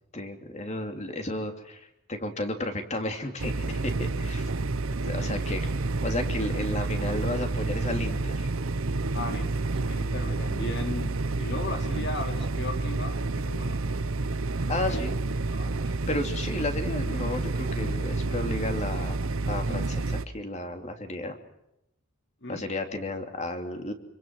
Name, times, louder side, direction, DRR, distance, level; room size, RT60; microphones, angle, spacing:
voice 1, 0.1-4.5 5.0-5.8 6.0-8.5 14.7-15.2 16.1-19.2 19.5-21.4 22.5-23.9, left 1 dB, 30° left, 5 dB, 3.0 m, -33 dB
sound 1, 3.4-20.3, right 3 dB, 70° right, 1.0 m, -29 dB
voice 2, 9.1-13.8 14.9-15.1 15.5-15.8 22.4-22.7, left 2 dB, 55° left, 5 dB, 2.8 m, -37 dB
27.0 x 24.5 x 6.1 m, 0.84 s
head